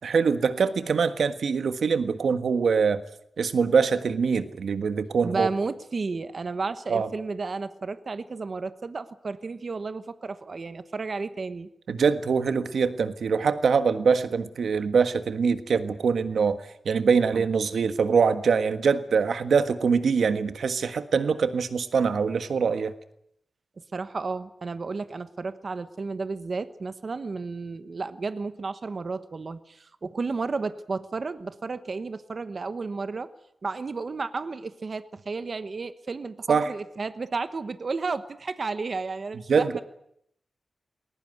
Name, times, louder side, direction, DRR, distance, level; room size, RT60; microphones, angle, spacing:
voice 1, 0.0-3.0 3.4-5.5 6.9-7.1 11.9-22.9 36.5-36.7 39.5-39.8, right 5 dB, 85° right, 11 dB, 1.5 m, -23 dB
voice 2, 5.2-11.7 23.9-33.3 33.6-39.8, right 4 dB, 45° right, 12 dB, 1.1 m, -32 dB
21.0 x 19.0 x 9.5 m, 0.72 s
wide cardioid pair, 155°, 0 cm